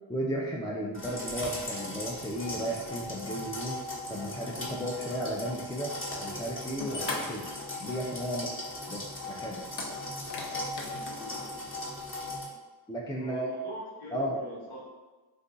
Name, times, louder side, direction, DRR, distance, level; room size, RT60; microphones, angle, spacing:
voice 1, 0.1-3.8 4.1-5.9 6.2-7.5 7.8-8.6 8.9-9.6 12.9-13.5 14.1-14.4, equal, 10° left, -2 dB, 0.3 m, -34 dB
sound 1, 0.9-12.4, left 1 dB, 25° left, 0.8 m, -38 dB
sound 2, 6.7-8.2 8.5-8.6 9.7-11.5, left 3 dB, 60° left, 0.7 m, -39 dB
voice 2, 11.1-11.6 13.2-14.9, left 1 dB, 80° left, -6 dB, 1.1 m, -42 dB
2.5 x 2.3 x 3.8 m, 1.2 s
cardioid pair, 55°, 47 cm